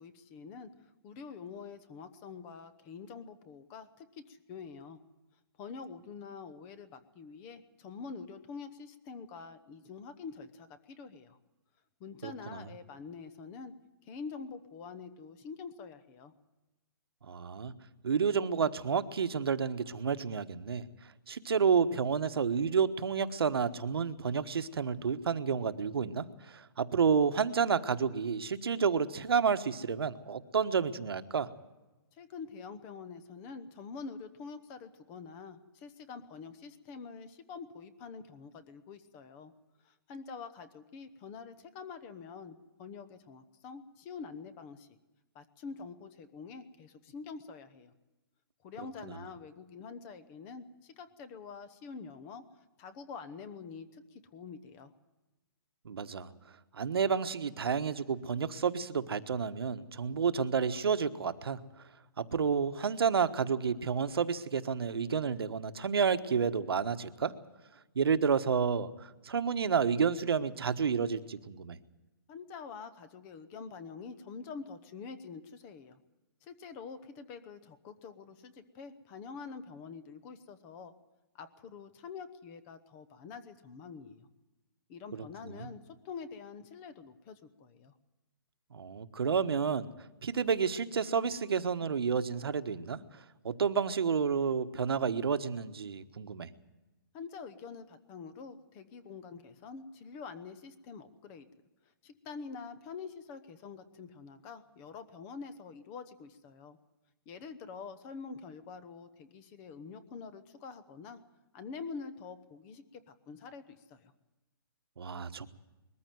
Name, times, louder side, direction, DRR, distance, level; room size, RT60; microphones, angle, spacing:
voice 1, 0.0-5.0 5.6-11.4 12.0-13.7 14.0-16.3 32.1-39.5 39.8-45.0 45.3-47.9 48.6-54.9 72.3-76.0 76.4-80.9 81.3-84.3 84.9-87.9 97.1-101.5 102.0-106.8 107.3-111.2 111.5-114.1, left 5 dB, 15° left, 12 dB, 0.9 m, -46 dB
voice 2, 12.2-12.7 17.3-17.7 18.0-20.8 21.3-31.5 49.0-49.2 55.8-56.3 56.7-61.6 62.2-67.3 67.9-68.9 69.2-71.8 85.1-85.7 88.7-89.9 90.2-93.0 93.4-96.5 115.0-115.5, right 6 dB, 80° right, 11 dB, 1.3 m, -30 dB
21.5 x 14.0 x 9.3 m, 1.1 s
hypercardioid pair, 175°, 12 cm